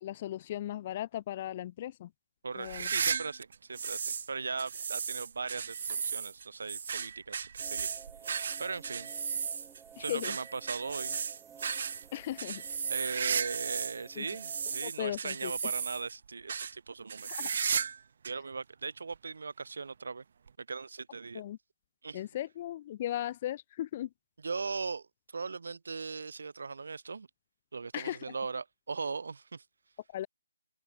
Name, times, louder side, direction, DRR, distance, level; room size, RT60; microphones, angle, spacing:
voice 1, 0.0-2.1 2.5-2.9 10.0-10.4 12.1-12.6 14.2-14.3 14.8-15.5 17.3-17.5 21.3-21.6 22.1-24.1 27.9-28.3 30.1-30.3, left 12 dB, 20° left, 1.9 m, -37 dB
voice 2, 2.4-7.9 8.6-9.1 10.0-11.2 12.9-17.6 18.2-20.2 20.6-21.4 22.0-22.2 24.4-27.3 27.7-29.6, right 4 dB, 55° right, 6.0 m, -39 dB
sound 1, 2.6-4.3 4.6-14.0 14.3-16.1 16.5-16.7 17.1-18.0 18.2-18.3 19.1-19.2 20.5-20.6, right 6 dB, 35° right, 2.6 m, -35 dB
sound 2, 7.6-14.9, right 8 dB, 5° right, 3.2 m, -54 dB
open air
hypercardioid pair, 175°, 0 cm